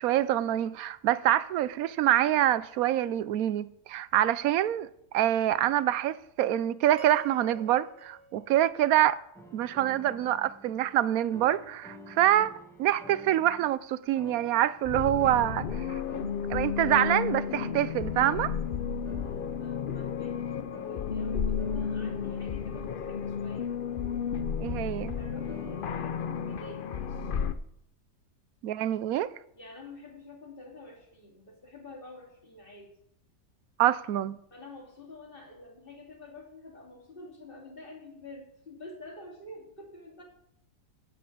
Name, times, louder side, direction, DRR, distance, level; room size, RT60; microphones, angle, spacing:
voice 1, 0.0-4.9 5.1-9.2 9.5-16.0 16.5-18.5 24.6-25.2 28.6-29.3 33.8-34.4, right 12 dB, 70° right, 1.0 m, -26 dB
sound 1, 7.0-9.3, right 4 dB, 50° right, 1.1 m, -48 dB
sound 2, 9.3-11.0 11.3-13.7 14.1-24.2 25.5-27.2, left 1 dB, ahead, 1.6 m, -51 dB
sound 3, 14.8-27.5, left 7 dB, 65° left, 0.5 m, -32 dB
voice 2, 19.5-23.8 25.1-27.3 29.5-32.9 34.5-40.2, left 2 dB, 30° left, 3.3 m, -48 dB
15.5 x 5.5 x 8.6 m
omnidirectional pair, 1.7 m